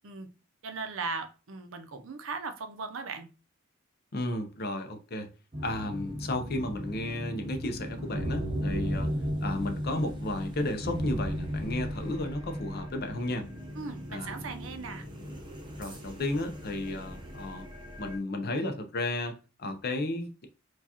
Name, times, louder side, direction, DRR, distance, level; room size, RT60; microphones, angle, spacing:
voice 1, 0.6-3.3 13.8-15.0, right 4 dB, 70° right, 0.6 m, -38 dB
voice 2, 4.1-5.3 5.6-9.1 9.4-13.5 14.1-14.4 15.8-17.7 18.0-20.5, left 1 dB, 50° left, 0.6 m, -33 dB
sound 1, 5.5-18.2, equal, 25° right, 0.8 m, -36 dB
4.6 x 2.4 x 2.8 m
head